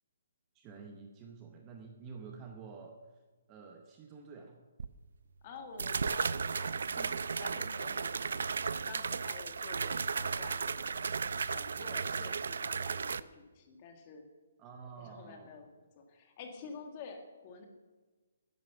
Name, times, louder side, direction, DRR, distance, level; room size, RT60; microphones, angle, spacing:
voice 1, 0.5-3.0 3.5-4.6 14.6-15.6, right 5 dB, 15° right, 3 dB, 0.8 m, -49 dB
sound 1, 4.8-4.9 5.8-13.2, right 5 dB, 60° right, 0.5 m, -35 dB
voice 2, 5.4-8.5 8.8-11.2 11.5-14.2 15.0-17.7, left 4 dB, 20° left, 4 dB, 1.6 m, -49 dB
13.5 x 10.5 x 7.0 m, 1.3 s
hypercardioid pair, 180°, 0 cm